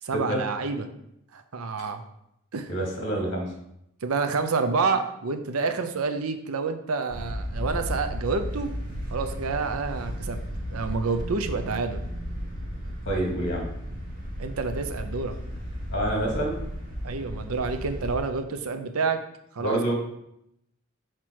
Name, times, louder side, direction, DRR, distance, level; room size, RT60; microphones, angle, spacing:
voice 1, 0.0-0.9 1.3-2.0 2.5-2.7 4.0-8.7 9.1-10.4 10.7-12.0 14.4-15.4 17.0-19.2 19.5-19.9, right 4 dB, 85° right, 8 dB, 0.6 m, -28 dB
voice 2, 2.7-3.5 13.0-13.7 15.9-16.5 19.6-19.9, right 1 dB, 60° left, -1 dB, 2.2 m, -27 dB
sound 1, 7.1-18.2, equal, 45° right, 2.2 m, -34 dB
5.9 x 4.6 x 4.6 m, 0.79 s
head